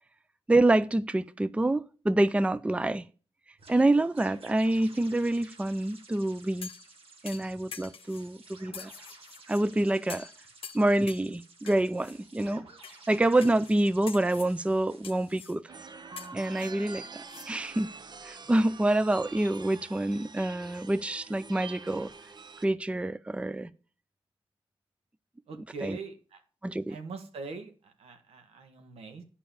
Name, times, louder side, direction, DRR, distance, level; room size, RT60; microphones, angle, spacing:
voice 1, 0.5-3.0 3.7-6.7 7.2-8.9 9.5-10.3 10.7-12.7 13.1-15.7 16.3-17.9 18.2-22.1 22.6-23.7 25.8-26.0 26.6-27.0, right 1 dB, 10° right, 0.5 m, -27 dB
sound 1, 3.6-15.6, right 3 dB, 70° right, 2.3 m, -54 dB
sound 2, 6.6-6.9 7.3-8.3 8.7-9.6 10.1-10.4 10.6-11.3 11.7-12.1 12.8-13.0 13.4-13.8 14.1-14.5 15.0-15.6 16.2-17.5 17.8-17.9, left 7 dB, 65° left, 0.8 m, -45 dB
sound 3, 15.7-22.7, right 4 dB, 45° right, 0.7 m, -46 dB
voice 2, 25.5-26.4 26.9-29.2, right 4 dB, 85° right, 1.6 m, -42 dB
9.1 x 5.6 x 7.0 m
cardioid pair, 60°, 10 cm